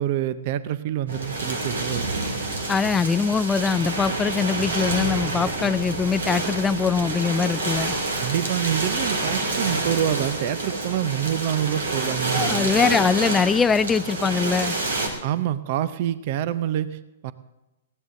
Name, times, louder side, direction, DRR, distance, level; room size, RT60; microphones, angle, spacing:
voice 1, 0.0-2.1 8.2-12.7 15.2-17.3, right 11 dB, 50° right, 15 dB, 0.6 m, -26 dB
sound 1, 1.1-15.1, right 2 dB, 75° right, 2.5 m, -28 dB
voice 2, 2.7-8.0 12.3-14.8, left 5 dB, 15° left, 16 dB, 0.4 m, -22 dB
20.0 x 16.5 x 2.6 m, 1.0 s
hypercardioid pair, 115°, 0 cm